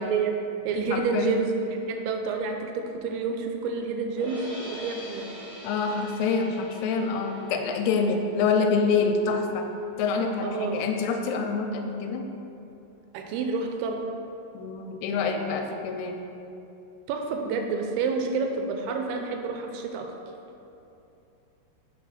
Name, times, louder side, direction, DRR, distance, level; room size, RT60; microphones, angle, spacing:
voice 1, 0.0-1.5 1.9-5.3 10.4-10.9 13.1-14.0 17.1-20.1, right 4 dB, 85° right, 3 dB, 2.5 m, -29 dB
voice 2, 0.9-1.4 5.6-9.7 10.0-12.3 14.5-16.2, left 4 dB, 90° left, 4 dB, 2.7 m, -26 dB
sound 1, 4.2-10.3, equal, 50° right, 2.2 m, -44 dB
6.0 x 3.9 x 5.7 m, 2.8 s
omnidirectional pair, 4.6 m